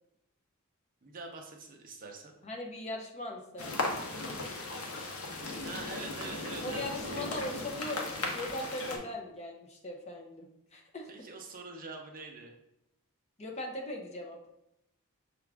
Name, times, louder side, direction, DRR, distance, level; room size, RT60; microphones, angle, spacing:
voice 1, 1.0-2.3 5.6-7.5 11.1-12.5, right 3 dB, 40° right, 2 dB, 0.6 m, -44 dB
voice 2, 2.4-3.7 6.6-11.1 13.4-14.4, left 1 dB, 30° left, 1 dB, 0.6 m, -39 dB
sound 1, 3.6-9.0, left 2 dB, 70° left, 0.8 m, -37 dB
5.9 x 2.4 x 3.3 m, 0.81 s
head